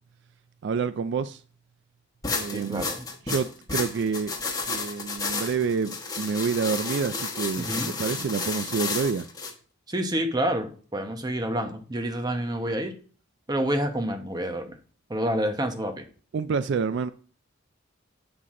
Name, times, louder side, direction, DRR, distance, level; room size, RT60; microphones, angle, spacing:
voice 1, 0.6-1.4 2.3-2.9 3.3-4.3 4.7-9.3 16.3-17.1, right 5 dB, 60° right, 0.3 m, -28 dB
sound 1, 2.2-9.5, left 4 dB, 20° left, 1.2 m, -32 dB
voice 2, 2.5-3.1 7.6-7.9 9.9-12.9 13.5-14.8 15.1-16.0, right 1 dB, 20° right, 0.9 m, -28 dB
7.8 x 5.8 x 3.7 m
head